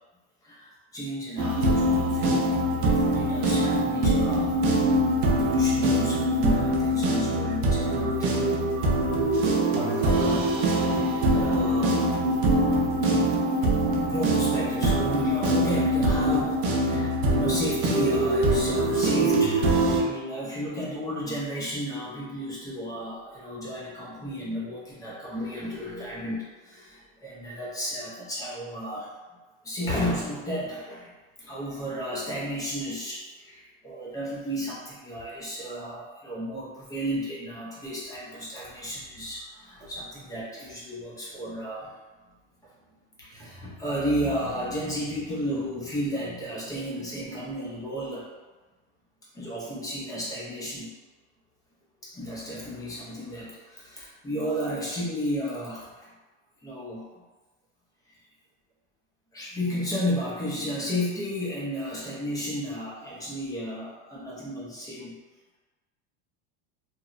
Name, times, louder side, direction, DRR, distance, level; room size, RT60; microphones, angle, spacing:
voice 1, 0.4-4.5 5.2-8.3 9.6-12.2 14.1-29.1 29.6-31.1 31.4-41.9 43.2-48.3 49.3-50.9 52.0-55.9 56.6-57.1 59.3-65.2, equal, 10° left, -6 dB, 0.4 m, -33 dB
sound 1, 1.4-20.0, right 1 dB, 50° right, 0.5 m, -23 dB
2.9 x 2.0 x 2.4 m, 1.2 s
supercardioid pair, 150°, 33 cm